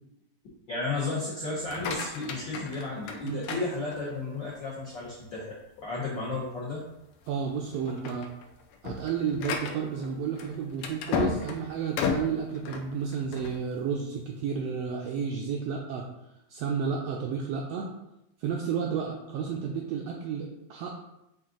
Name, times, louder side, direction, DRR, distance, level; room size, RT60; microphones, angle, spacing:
voice 1, 0.7-6.8, left 3 dB, 75° left, -7 dB, 1.0 m, -33 dB
sound 1, 1.5-4.3 4.8-5.3 5.8-5.9 6.3-6.4 7.1-7.4 7.7-13.6, left 5 dB, 90° left, 1.3 m, -34 dB
voice 2, 3.2-3.6 7.3-8.3 8.8-16.1 16.5-17.9 18.4-20.9, right 6 dB, 80° right, -1 dB, 1.4 m, -32 dB
5.5 x 2.5 x 3.7 m, 0.89 s
omnidirectional pair, 3.3 m